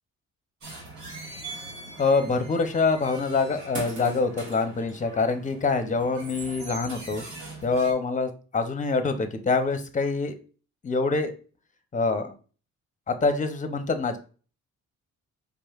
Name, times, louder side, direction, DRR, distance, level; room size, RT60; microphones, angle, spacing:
sound 1, 0.6-7.9, right 2 dB, 70° right, 1.8 m, -41 dB
voice 1, 2.0-7.2 7.6-10.3 10.8-11.3 11.9-12.3 13.1-14.2, left 4 dB, 25° left, 8 dB, 0.6 m, -25 dB
5.0 x 3.2 x 2.3 m, 0.38 s
cardioid pair, 90°, 30 cm